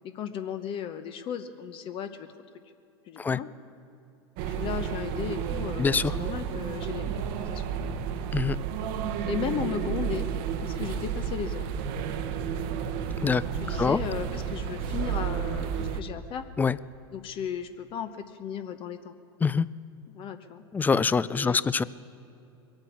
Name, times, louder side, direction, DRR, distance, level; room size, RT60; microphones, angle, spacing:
voice 1, 0.1-2.3 3.1-3.5 4.5-8.0 9.2-10.3 10.6-11.7 13.6-16.4 17.1-19.1 20.1-20.6 21.3-21.7, left 8 dB, 40° left, 9 dB, 0.8 m, -35 dB
sound 1, 4.4-16.0, right 8 dB, 55° right, 1.0 m, -31 dB
voice 2, 5.8-6.2 8.3-8.6 13.2-13.4 13.8-14.0 16.6-16.8 19.4-19.7 20.7-21.8, left 5 dB, 15° left, 18 dB, 0.3 m, -24 dB
22.0 x 9.0 x 7.1 m, 2.8 s
hypercardioid pair, 100°, 14 cm